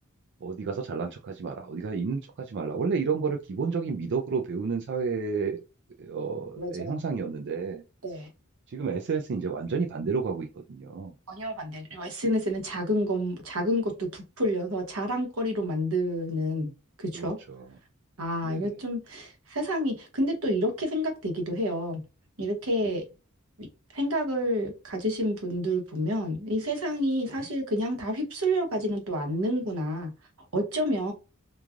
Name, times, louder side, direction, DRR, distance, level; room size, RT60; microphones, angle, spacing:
voice 1, 0.4-5.6 6.0-7.8 8.7-11.1 17.1-17.6 18.4-18.7, right 5 dB, 55° right, 0.4 m, -31 dB
voice 2, 6.6-7.0 8.0-8.3 11.3-16.7 17.0-17.4 18.2-22.0 22.4-23.0 23.6-23.7 23.9-30.1 30.5-31.1, equal, 90° right, 1.0 m, -29 dB
3.1 x 2.3 x 2.4 m
head